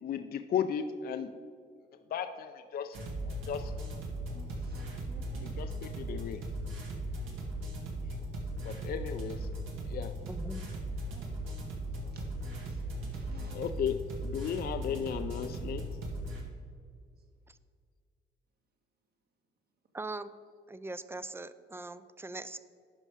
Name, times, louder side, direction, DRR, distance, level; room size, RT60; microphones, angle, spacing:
voice 1, 0.0-1.3 2.1-3.0 3.2-3.7 5.4-6.4 8.6-9.5 9.9-10.1 13.5-15.9, left 8 dB, 50° left, 8 dB, 0.5 m, -35 dB
sound 1, 2.9-16.4, right 1 dB, 90° right, 1.8 m, -38 dB
voice 2, 4.3-5.5 11.1-11.3 12.1-12.2 12.5-13.7 14.9-15.6, right 3 dB, 50° right, 4 dB, 1.5 m, -56 dB
voice 3, 10.2-10.7 17.5-17.6 19.9-20.3 20.7-22.6, right 2 dB, 10° right, 14 dB, 0.4 m, -41 dB
11.0 x 5.4 x 4.9 m, 2.1 s
cardioid pair, 90°, 20 cm